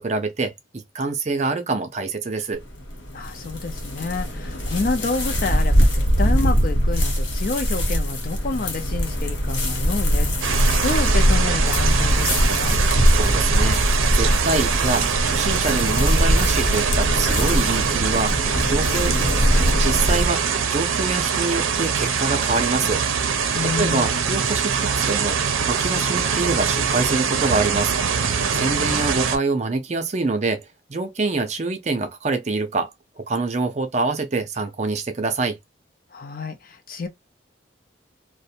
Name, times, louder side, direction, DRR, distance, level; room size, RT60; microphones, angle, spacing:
voice 1, 0.0-2.6 13.1-19.2 19.8-23.0 23.6-25.4 25.7-27.9 28.5-32.9 33.2-35.6, right 3 dB, 35° right, 0.5 m, -25 dB
sound 1, 2.5-20.3, equal, 70° left, 1.0 m, -21 dB
voice 2, 3.1-12.8 23.5-24.3 28.5-29.0 36.1-37.1, left 3 dB, 45° left, 0.5 m, -29 dB
sound 2, 10.4-29.4, right 6 dB, 90° right, 0.5 m, -23 dB
2.5 x 2.1 x 2.7 m
head